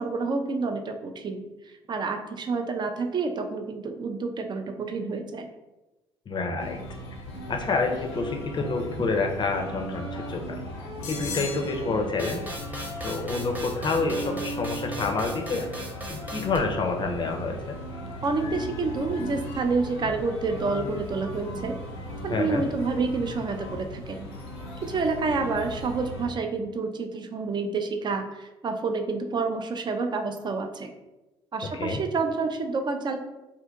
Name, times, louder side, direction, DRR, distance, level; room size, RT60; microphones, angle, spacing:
voice 1, 0.0-1.4 1.9-5.5 18.2-21.7 22.2-24.3 24.8-30.9 31.5-33.2, right 4 dB, 35° right, 5 dB, 0.4 m, -28 dB
voice 2, 6.3-6.8 7.5-10.6 11.1-12.4 13.0-15.7 16.1-17.8 22.3-22.6 31.7-32.0, left 3 dB, 35° left, 3 dB, 0.5 m, -28 dB
sound 1, 6.6-26.3, equal, 85° left, 0.5 m, -37 dB
sound 2, 12.2-16.6, right 1 dB, 10° right, 0.8 m, -39 dB
2.7 x 2.5 x 2.3 m, 1.0 s
hypercardioid pair, 55°, 13 cm